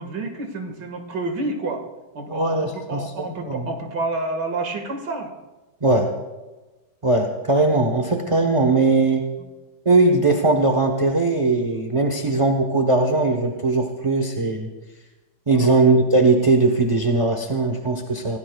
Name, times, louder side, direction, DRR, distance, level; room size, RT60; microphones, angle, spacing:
voice 1, 0.0-1.9 2.1-5.3 9.4-9.5 15.5-15.7, right 2 dB, 65° right, 3 dB, 2.4 m, -29 dB
voice 2, 2.3-3.7 5.8-6.1 7.0-9.2 9.8-14.7 15.5-18.4, right 3 dB, 25° right, 2 dB, 0.7 m, -19 dB
26.0 x 17.5 x 2.3 m, 1.2 s
omnidirectional pair, 2.0 m